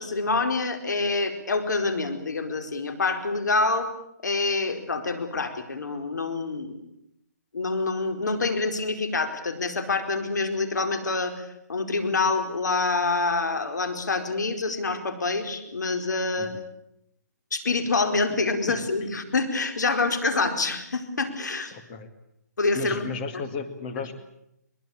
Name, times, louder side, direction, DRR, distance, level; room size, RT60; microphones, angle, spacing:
voice 1, 0.0-3.9 4.2-6.8 7.5-16.5 17.5-21.7 22.6-23.0, left 3 dB, 85° left, 8 dB, 4.7 m, -26 dB
voice 2, 21.7-22.1 22.7-24.1, left 5 dB, 30° left, 7 dB, 2.1 m, -34 dB
23.5 x 21.5 x 8.7 m, 0.78 s
hypercardioid pair, 160°, 9 cm